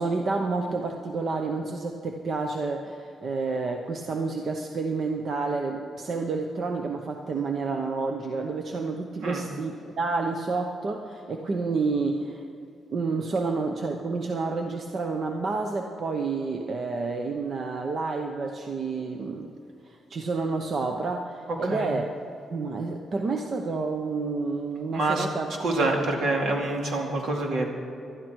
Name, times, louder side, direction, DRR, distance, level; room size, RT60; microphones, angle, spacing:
voice 1, 0.0-12.4 12.9-19.6 19.8-22.0 22.5-25.5 25.8-25.9, right 4 dB, 40° right, 3 dB, 0.8 m, -29 dB
voice 2, 24.9-27.7, right 2 dB, 70° right, 1 dB, 2.5 m, -27 dB
19.5 x 12.5 x 4.7 m, 2.7 s
wide cardioid pair, 155°, 0 cm